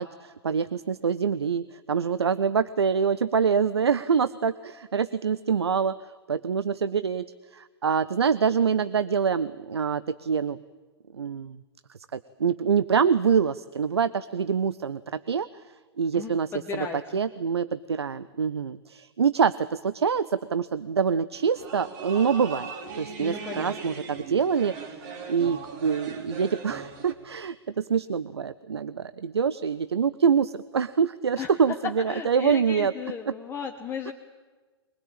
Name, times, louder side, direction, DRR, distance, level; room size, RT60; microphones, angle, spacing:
voice 1, 0.0-5.9 6.3-7.3 7.5-10.6 11.1-11.6 12.1-15.5 16.0-16.5 16.7-16.9 17.1-22.7 23.0-32.9 33.3-33.4 34.1-34.2, right 6 dB, 75° right, 16 dB, 0.7 m, -25 dB
voice 2, 16.1-17.0 23.2-23.9 31.4-31.5 32.1-34.1, left 6 dB, 15° left, 2 dB, 1.6 m, -35 dB
sound 1, 21.3-27.1, right 5 dB, 45° right, 3.8 m, -39 dB
23.0 x 20.5 x 9.0 m, 1.3 s
figure-of-eight pair, 115°, 14 cm